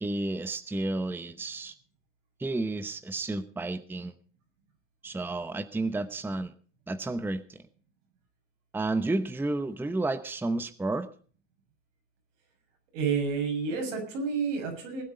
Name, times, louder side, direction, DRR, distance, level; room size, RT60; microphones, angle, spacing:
voice 1, 0.0-1.7 2.4-4.1 5.0-6.5 6.9-7.6 8.7-11.1, right 2 dB, 5° right, 11 dB, 0.8 m, -31 dB
voice 2, 12.9-15.0, right 5 dB, 80° right, 2 dB, 6.8 m, -29 dB
19.5 x 8.7 x 5.3 m, 0.42 s
supercardioid pair, 105°, 37 cm